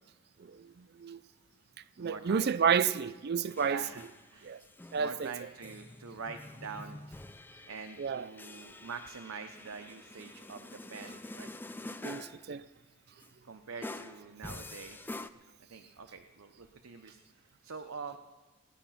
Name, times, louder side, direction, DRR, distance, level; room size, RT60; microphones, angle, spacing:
voice 1, 0.4-1.2 2.0-3.8 4.4-4.6 4.9-5.3 8.0-8.3 12.0-12.6, right 7 dB, 50° right, 0.5 m, -31 dB
voice 2, 2.0-2.5 3.6-4.6 5.0-7.0 7.7-11.5 13.5-15.0 15.7-18.2, right 5 dB, 90° right, 0.8 m, -45 dB
sound 1, 3.5-4.3 4.6-12.5 13.2-13.3 13.8-15.3, left 2 dB, 10° left, 0.4 m, -47 dB
17.5 x 10.0 x 5.7 m
head